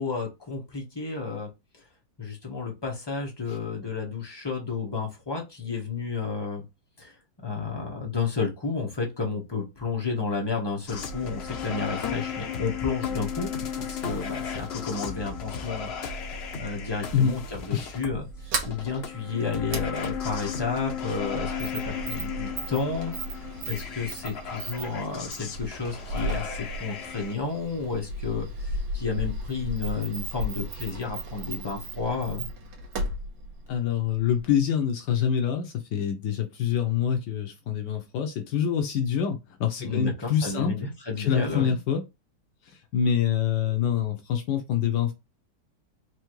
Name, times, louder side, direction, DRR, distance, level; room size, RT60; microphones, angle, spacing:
voice 1, 0.0-1.5 2.2-6.6 7.0-7.1 7.4-13.5 13.8-15.9 16.6-18.3 18.6-23.1 23.6-32.5 39.8-41.8, left 4 dB, 20° left, 0.9 m, -31 dB
sound 1, 10.9-27.3, left 6 dB, 60° left, 0.6 m, -35 dB
Sliding door, 18.2-34.6, right 1 dB, 80° right, 1.6 m, -35 dB
voice 2, 33.7-40.7 41.2-42.0 42.6-45.1, left 8 dB, 75° left, 1.3 m, -26 dB
4.7 x 2.8 x 3.1 m
omnidirectional pair, 1.9 m